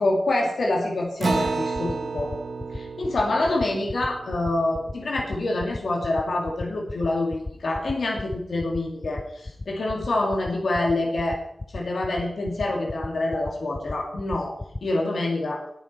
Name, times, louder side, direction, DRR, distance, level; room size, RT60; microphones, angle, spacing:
voice 1, 0.0-2.3 2.7-11.4 11.7-15.6, left 2 dB, 75° left, 0 dB, 2.7 m, -26 dB
sound 1, 1.1-14.8, left 2 dB, 30° left, 0.6 m, -33 dB
Acoustic guitar, 1.2-6.1, right 4 dB, 75° right, 1.3 m, -32 dB
19.5 x 7.5 x 4.6 m, 0.75 s
wide cardioid pair, 90°, 0 cm